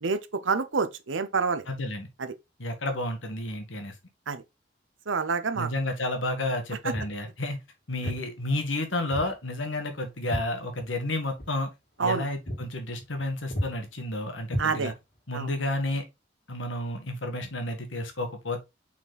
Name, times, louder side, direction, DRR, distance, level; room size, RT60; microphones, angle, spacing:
voice 1, 0.0-1.7 2.2-2.3 4.3-4.4 5.1-5.7 12.0-12.3 14.6-14.9 15.3-15.5, right 5 dB, 80° right, 0.8 m, -27 dB
voice 2, 1.7-2.1 2.6-3.9 5.5-7.6 7.9-11.7 12.0-14.9 15.3-16.0 16.5-18.6, left 1 dB, 80° left, 1.8 m, -31 dB
Walk footsteps, 6.9-7.2 8.0-8.2 9.1-9.3 9.7-11.1 11.4-11.6 12.0-12.1 12.5-12.7 13.0-13.2 13.5-13.7 14.5-15.2, equal, 55° left, 2.7 m, -33 dB
5.9 x 4.4 x 4.1 m
head